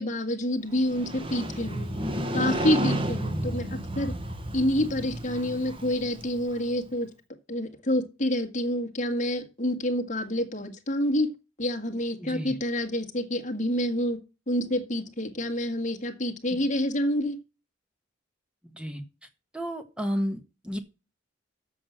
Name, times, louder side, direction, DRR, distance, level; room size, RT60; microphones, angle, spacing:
voice 1, 0.0-1.9 2.3-4.1 4.5-7.1 7.5-11.3 11.6-14.2 14.5-17.4, left 1 dB, 40° left, 5 dB, 1.8 m, -28 dB
Motorcycle, 0.7-6.7, right 1 dB, 25° right, 1.1 m, -32 dB
voice 2, 12.2-12.6 16.5-16.6 18.7-19.0 19.5-20.8, equal, 5° right, 7 dB, 1.4 m, -32 dB
7.8 x 6.4 x 7.3 m, 0.30 s
head